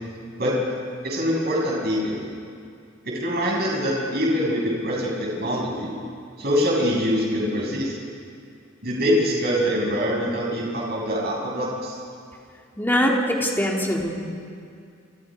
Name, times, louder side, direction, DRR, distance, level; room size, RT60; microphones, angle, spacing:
voice 1, 1.0-2.2 3.0-5.9 6.4-8.0 8.8-12.0, equal, 50° right, -3 dB, 7.9 m, -24 dB
voice 2, 12.8-14.1, equal, 10° left, -2 dB, 3.5 m, -22 dB
30.0 x 27.5 x 5.4 m, 2.4 s
head